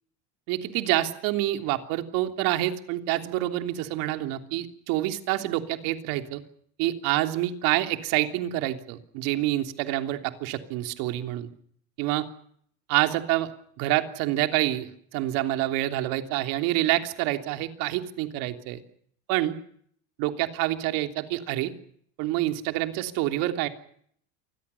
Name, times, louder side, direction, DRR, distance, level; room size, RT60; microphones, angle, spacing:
voice 1, 0.5-6.4 6.8-11.5 12.0-12.3 12.9-13.5 13.8-18.8 19.3-19.5 20.2-21.7 22.2-23.7, right 15 dB, 65° right, 7 dB, 3.2 m, -27 dB
28.0 x 21.0 x 7.0 m, 0.66 s
cardioid pair, 155°, 36 cm